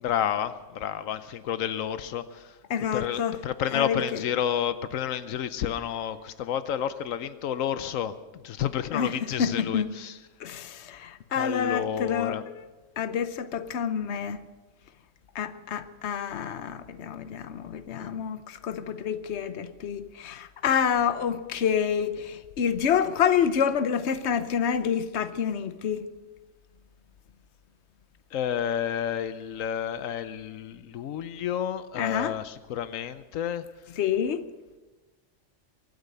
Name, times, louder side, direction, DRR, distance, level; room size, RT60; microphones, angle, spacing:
voice 1, 0.0-2.6 2.9-8.1 8.4-10.2 11.4-12.4 28.3-33.6, left 9 dB, 85° left, 1.1 m, -30 dB
voice 2, 2.7-3.4 3.7-4.2 8.9-9.1 9.4-9.9 10.4-12.6 13.0-14.4 15.3-26.1 32.0-32.3 34.0-34.4, left 7 dB, 60° left, 1.1 m, -28 dB
23.5 x 9.1 x 6.7 m
omnidirectional pair, 1.3 m